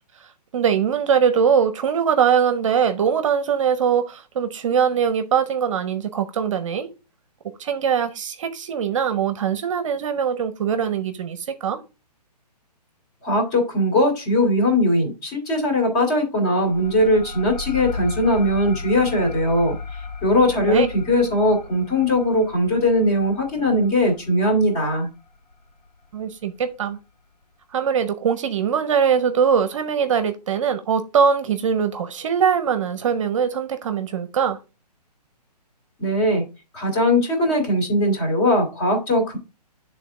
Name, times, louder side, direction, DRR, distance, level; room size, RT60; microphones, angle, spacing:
voice 1, 0.5-6.9 7.6-11.8 20.7-20.9 26.1-27.0 27.7-34.6, right 7 dB, 50° right, 0.7 m, -22 dB
voice 2, 13.2-19.8 20.2-25.1 36.0-36.4 36.7-39.4, left 1 dB, 30° left, 2.4 m, -20 dB
sound 1, 16.7-25.9, left 3 dB, 90° left, 1.2 m, -35 dB
9.1 x 3.6 x 3.6 m
hypercardioid pair, 155°, 21 cm